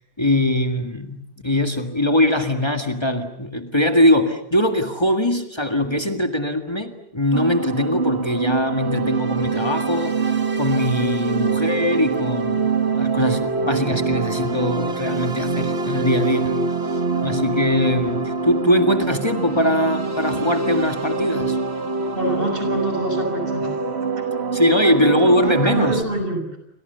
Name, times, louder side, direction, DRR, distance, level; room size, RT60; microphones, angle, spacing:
voice 1, 0.0-10.3 10.6-16.6 16.8-21.6 24.5-26.0, left 1 dB, 25° left, 5 dB, 1.9 m, -21 dB
sound 1, 7.3-26.0, right 4 dB, 80° right, 2.3 m, -24 dB
voice 2, 22.2-23.8 24.8-25.1 25.4-26.6, right 1 dB, 60° right, 4 dB, 7.5 m, -26 dB
29.0 x 26.5 x 6.9 m, 0.76 s
omnidirectional pair, 1.1 m